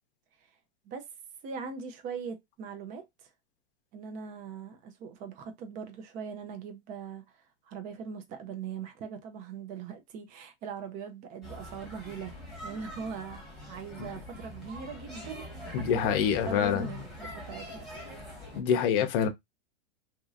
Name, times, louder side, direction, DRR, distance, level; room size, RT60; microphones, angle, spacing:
voice 1, 1.4-3.3 3.9-12.4 12.6-18.3, right 6 dB, 25° right, 0.5 m, -41 dB
sound 1, 11.4-18.6, equal, ahead, 1.1 m, -44 dB
voice 2, 15.7-16.9 18.5-19.3, left 8 dB, 50° left, 0.7 m, -26 dB
3.0 x 2.6 x 2.3 m
supercardioid pair, 145°, 34 cm